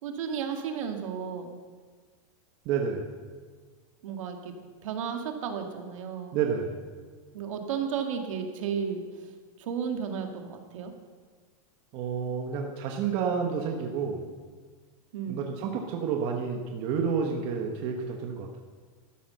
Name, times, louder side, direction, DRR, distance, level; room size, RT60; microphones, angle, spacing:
voice 1, 0.0-1.6 4.0-4.5 4.8-6.4 7.3-9.0 9.6-10.9 15.1-15.4, right 7 dB, 65° right, 4 dB, 2.1 m, -33 dB
voice 2, 2.6-3.1 6.3-6.8 11.9-14.3 15.3-18.6, right 6 dB, 30° right, 2 dB, 1.1 m, -30 dB
13.0 x 9.9 x 6.4 m, 1.5 s
supercardioid pair, 170°, 18 cm